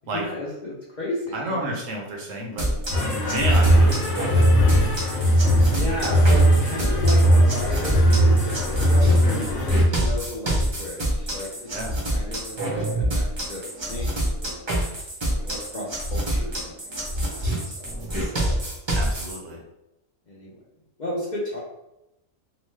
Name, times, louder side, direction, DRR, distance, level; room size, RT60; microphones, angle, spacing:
voice 1, 0.1-1.6 5.7-11.7 12.1-14.6 15.2-17.0 17.4-17.7 18.1-18.6 20.3-20.6 21.0-21.6, left 1 dB, 50° left, -6 dB, 0.6 m, -33 dB
voice 2, 1.3-4.4 11.7-12.0 18.9-19.6, right 1 dB, 75° right, -1 dB, 1.1 m, -31 dB
sound 1, 2.6-19.4, right 1 dB, 30° right, 0.6 m, -27 dB
band biye, 2.9-9.9, equal, 85° left, 1.0 m, -19 dB
2.9 x 2.1 x 3.1 m, 0.89 s
omnidirectional pair, 1.3 m